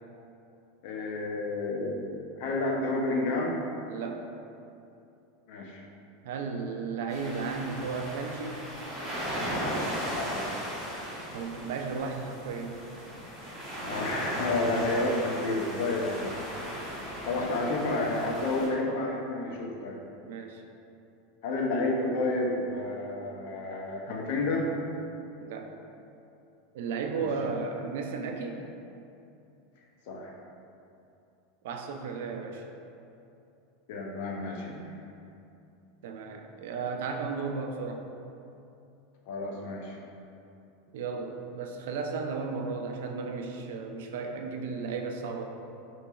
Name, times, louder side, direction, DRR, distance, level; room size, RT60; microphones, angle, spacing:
voice 1, 0.8-3.5 5.5-5.8 10.1-10.5 13.8-16.7 17.2-20.0 21.4-24.7 27.1-27.3 30.1-30.3 33.9-34.9 39.3-40.0, left 2 dB, 65° left, 0 dB, 0.5 m, -30 dB
voice 2, 3.9-4.3 6.2-8.6 11.3-12.8 20.3-20.6 25.4-25.7 26.7-28.6 31.6-32.6 36.0-38.1 40.9-45.4, right 4 dB, 75° right, 3 dB, 0.3 m, -34 dB
sound 1, 7.1-18.7, equal, 20° right, 1.1 m, -36 dB
3.9 x 3.0 x 2.3 m, 2.7 s
supercardioid pair, 150°, 0 cm